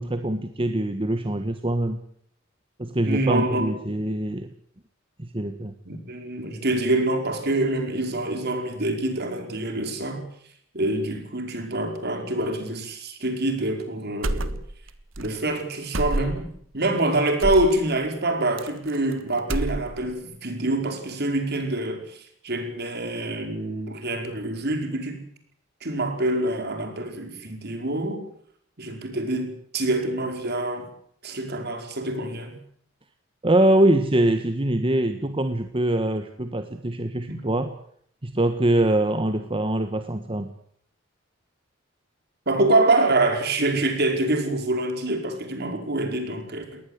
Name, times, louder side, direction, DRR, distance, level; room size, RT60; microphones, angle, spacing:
voice 1, 0.0-2.0 2.8-4.5 5.2-5.7 33.4-37.7 38.2-40.5, right 1 dB, 25° right, 8 dB, 1.3 m, -23 dB
voice 2, 3.0-4.0 5.8-10.2 10.7-14.6 15.2-25.2 25.8-28.2 28.8-30.9 31.2-32.6 37.3-37.4 42.5-46.8, right 2 dB, 55° right, 5 dB, 5.0 m, -26 dB
sound 1, 14.2-14.9 15.1-15.3 15.9-16.6 17.4-17.7 18.6-19.1 19.4-20.1, right 1 dB, 75° right, 1.5 m, -28 dB
21.5 x 19.0 x 8.1 m, 0.64 s
head